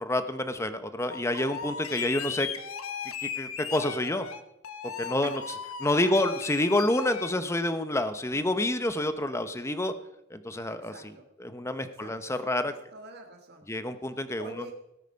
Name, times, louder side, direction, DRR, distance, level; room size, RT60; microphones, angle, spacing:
voice 1, 0.0-2.5 3.2-4.3 4.8-5.4 5.8-9.9 10.3-10.9 11.4-12.7 13.7-14.6, left 1 dB, 15° left, 10 dB, 0.9 m, -28 dB
sound 1, 1.1-7.3, left 7 dB, 85° left, 1.1 m, -37 dB
voice 2, 5.8-6.3 10.7-11.2 11.8-13.7 14.4-14.7, right 2 dB, 50° right, 4 dB, 1.6 m, -46 dB
18.0 x 9.0 x 5.3 m, 0.84 s
head